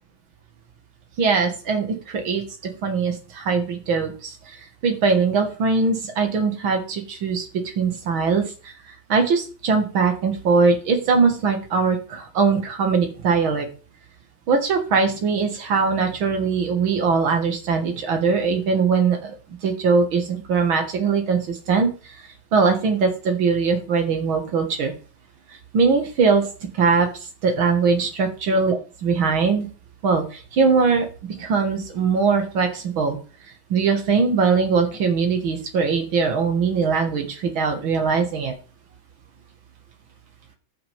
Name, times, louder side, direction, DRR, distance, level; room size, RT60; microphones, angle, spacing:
voice 1, 1.2-4.6 4.8-8.7 9.1-13.7 14.5-19.3 19.6-22.2 22.5-24.9 25.7-26.5 26.7-27.1 27.4-29.7 30.0-31.1 31.4-33.2 33.7-38.5, right 5 dB, 80° right, 4 dB, 2.3 m, -21 dB
13.5 x 6.2 x 3.4 m, 0.36 s
omnidirectional pair, 2.2 m